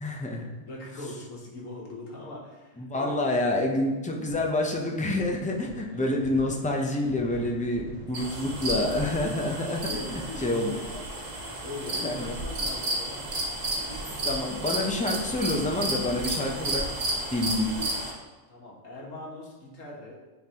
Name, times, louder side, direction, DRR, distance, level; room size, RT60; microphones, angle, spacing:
voice 1, 0.0-0.5 2.8-9.8 10.1-10.7 11.9-12.4 14.2-16.8 17.3-17.7, left 1 dB, 10° left, 0 dB, 0.3 m, -28 dB
voice 2, 0.7-3.2 9.8-10.9 11.3-13.2 18.5-20.2, left 2 dB, 85° left, -3 dB, 1.7 m, -41 dB
sound 1, 4.3-4.8 5.2-9.2, equal, 60° left, 1.8 m, -45 dB
sound 2, 8.1-18.1, right 1 dB, 75° right, 1.5 m, -32 dB
9.2 x 3.9 x 2.9 m, 1.2 s
omnidirectional pair, 1.3 m